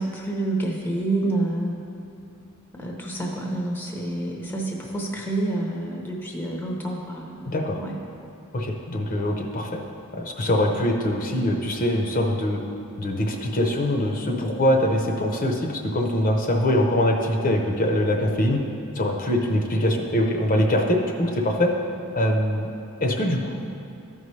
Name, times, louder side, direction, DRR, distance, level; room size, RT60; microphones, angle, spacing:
voice 1, 0.0-1.8 2.7-7.5 7.8-8.0, right 2 dB, 10° left, -1 dB, 0.8 m, -28 dB
voice 2, 7.4-7.8 8.5-9.8 10.1-12.6 13.0-18.6 18.9-21.7 22.1-22.7 23.0-23.5, left 1 dB, 40° left, 1 dB, 0.8 m, -23 dB
13.5 x 5.4 x 3.3 m, 2.6 s
head